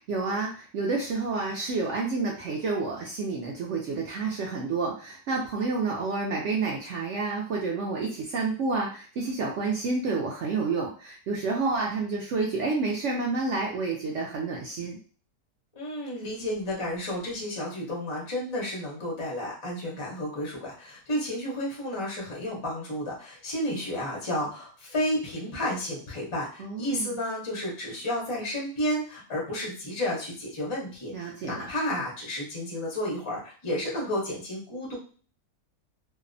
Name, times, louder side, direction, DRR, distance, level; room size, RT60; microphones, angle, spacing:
voice 1, 0.1-15.0 26.6-27.2 31.1-31.7, right 3 dB, 80° right, -2 dB, 0.6 m, -29 dB
voice 2, 15.8-35.0, left 1 dB, 45° left, -3 dB, 0.4 m, -32 dB
2.7 x 2.0 x 2.5 m, 0.41 s
omnidirectional pair, 1.7 m